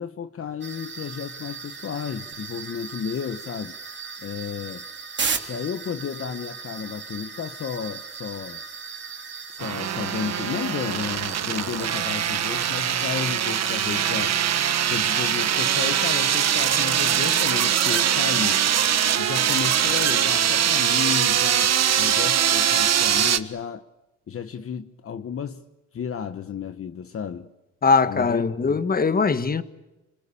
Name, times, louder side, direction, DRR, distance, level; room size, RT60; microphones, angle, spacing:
voice 1, 0.0-3.8 4.2-4.9 5.5-8.6 9.5-14.4 14.9-18.6 19.2-23.9 24.3-25.6 25.9-27.5 28.1-28.8, left 7 dB, 50° left, 1.2 m, -32 dB
sound 1, 0.6-19.2, right 5 dB, 35° right, 3.3 m, -37 dB
sound 2, 9.6-23.4, right 9 dB, 60° right, 1.5 m, -22 dB
voice 2, 27.8-29.6, left 4 dB, 30° left, 1.5 m, -21 dB
27.0 x 20.5 x 8.6 m
cardioid pair, 90°, 30 cm